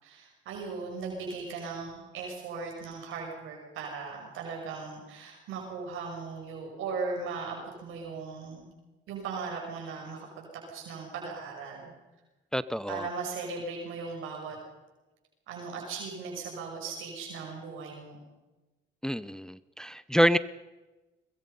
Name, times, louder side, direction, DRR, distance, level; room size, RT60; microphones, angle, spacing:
voice 1, 0.0-8.6 9.1-11.9 12.9-14.6 15.5-18.2, right 4 dB, 90° right, 0 dB, 6.0 m, -38 dB
voice 2, 12.5-13.1 19.0-20.4, equal, 5° left, 16 dB, 0.7 m, -27 dB
22.5 x 22.5 x 5.5 m, 1.1 s
cardioid pair, 90°, 20 cm